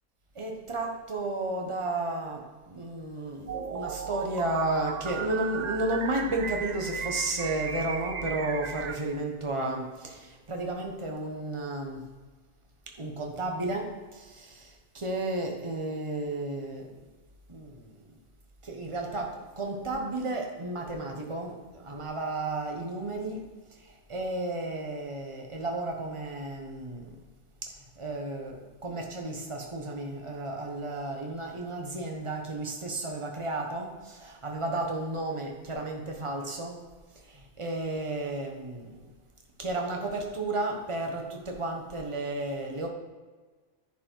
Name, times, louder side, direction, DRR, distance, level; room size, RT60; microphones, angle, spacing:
voice 1, 0.3-12.0 13.0-16.9 17.5-18.0 18.6-23.5 23.8-27.2 27.6-36.8 37.2-38.9 39.6-42.9, right 2 dB, 25° right, 1 dB, 1.3 m, -33 dB
sound 1, 3.5-9.0, right 6 dB, 50° right, 0.5 m, -36 dB
10.5 x 6.0 x 4.7 m, 1.4 s
omnidirectional pair, 1.3 m